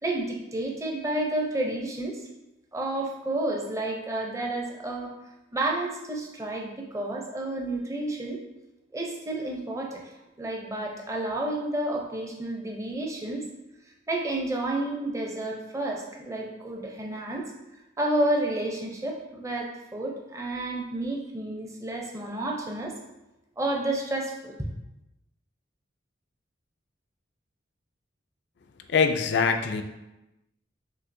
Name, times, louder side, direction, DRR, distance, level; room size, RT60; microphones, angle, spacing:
voice 1, 0.0-2.2 2.7-5.1 5.5-8.4 8.9-10.0 10.4-13.5 14.1-17.5 18.0-22.9 23.6-24.6, right 1 dB, 15° right, -1 dB, 0.5 m, -30 dB
voice 2, 28.9-29.8, left 5 dB, 60° left, 6 dB, 0.3 m, -23 dB
6.1 x 2.7 x 2.6 m, 0.97 s
head